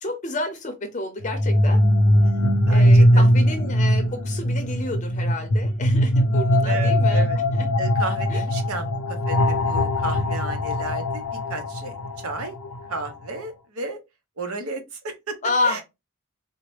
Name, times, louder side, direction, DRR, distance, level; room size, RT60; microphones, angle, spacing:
voice 1, 0.0-1.8 2.7-7.2 7.5-7.7 8.3-8.4 15.4-15.8, left 2 dB, 35° left, 0.6 m, -29 dB
sound 1, 1.2-13.1, equal, 85° left, 0.6 m, -20 dB
voice 2, 2.7-3.3 6.6-7.4 7.8-12.6 12.9-14.0 14.4-15.4 15.6-15.8, right 3 dB, 75° right, 0.9 m, -33 dB
3.9 x 2.1 x 3.2 m
head